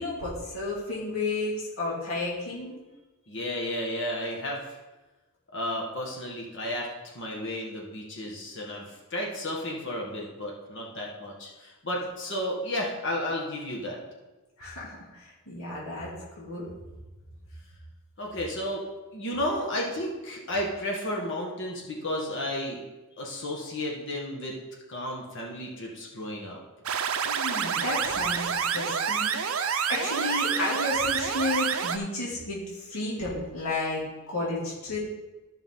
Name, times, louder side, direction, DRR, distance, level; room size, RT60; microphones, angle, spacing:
voice 1, 0.0-2.8 14.6-16.6 27.3-35.0, left 2 dB, 75° left, -5 dB, 2.7 m, -32 dB
voice 2, 3.3-4.8 5.5-14.0 18.2-18.8 19.1-22.8 23.2-24.5 24.9-26.6, left 1 dB, 60° left, -1 dB, 1.7 m, -33 dB
sound 1, 26.9-32.0, right 7 dB, 70° right, 0.7 m, -28 dB
14.0 x 6.0 x 3.8 m, 1.1 s
head